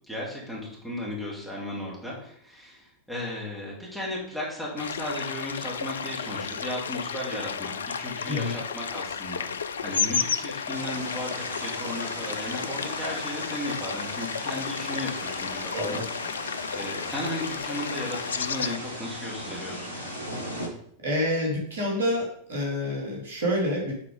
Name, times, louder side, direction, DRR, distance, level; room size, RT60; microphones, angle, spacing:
voice 1, 0.1-16.0 16.7-20.0, left 1 dB, ahead, -6 dB, 2.6 m, -35 dB
sound 1, 4.8-18.8, left 6 dB, 70° left, 0.3 m, -33 dB
voice 2, 8.2-8.6 15.7-16.1 21.0-23.9, left 1 dB, 65° right, -2 dB, 2.2 m, -28 dB
sound 2, 10.7-20.7, equal, 80° right, 1.4 m, -38 dB
7.1 x 4.1 x 5.0 m, 0.65 s
figure-of-eight pair, 90°, 0 cm